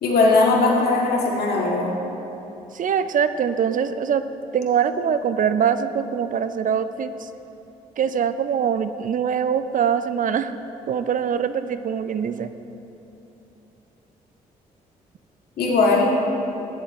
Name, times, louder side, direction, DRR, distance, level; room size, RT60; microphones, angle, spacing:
voice 1, 0.0-1.9 15.6-16.1, left 3 dB, 70° left, -2 dB, 2.0 m, -19 dB
voice 2, 2.7-4.2 4.5-7.3 8.0-10.5 10.9-12.5, right 7 dB, 50° right, 11 dB, 0.5 m, -23 dB
13.5 x 10.0 x 3.2 m, 3.0 s
supercardioid pair, 55°, 17 cm